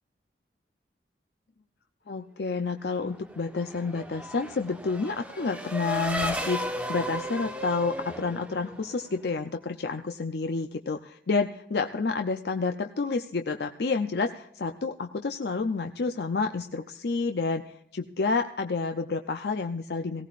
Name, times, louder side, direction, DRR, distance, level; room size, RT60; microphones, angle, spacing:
voice 1, 2.1-20.3, left 4 dB, 65° left, 6 dB, 0.5 m, -29 dB
Race car auto racing / Accelerating revving vroom, 3.1-9.2, equal, 5° right, 1.1 m, -35 dB
18.5 x 16.5 x 2.5 m, 0.73 s
head